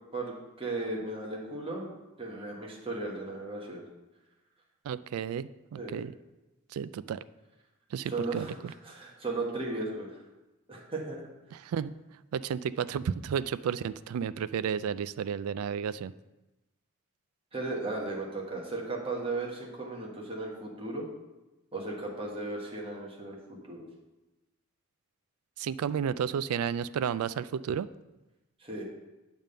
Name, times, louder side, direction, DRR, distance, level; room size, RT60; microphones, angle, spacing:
voice 1, 0.1-3.8 5.7-6.0 8.1-10.2 10.7-11.2 17.5-21.0 21.7-23.8 28.6-28.8, right 2 dB, 25° right, -3 dB, 1.3 m, -36 dB
voice 2, 4.8-6.1 6.7-7.2 7.9-8.5 11.5-11.9 12.3-16.1 25.6-27.9, right 7 dB, 85° right, 15 dB, 0.3 m, -32 dB
9.0 x 3.6 x 6.6 m, 1.0 s
head